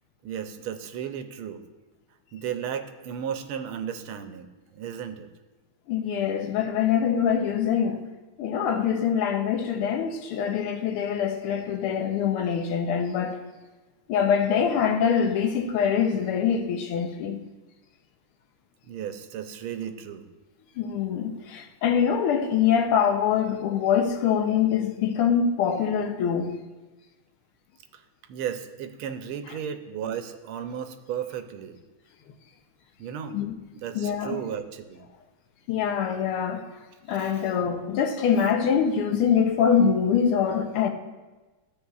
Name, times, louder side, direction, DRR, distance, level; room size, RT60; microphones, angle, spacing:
voice 1, 0.2-1.7 2.3-5.3 18.9-20.3 27.9-28.0 28.3-31.8 33.0-33.4 33.7-35.1 37.2-37.4, right 8 dB, 85° right, 1.5 m, -34 dB
voice 2, 5.9-8.1 8.4-13.4 14.1-17.4 20.8-26.6 33.3-33.5 34.0-34.4 35.7-36.6 37.1-40.9, left 7 dB, 90° left, 1.7 m, -24 dB
13.0 x 8.0 x 2.4 m
omnidirectional pair, 2.3 m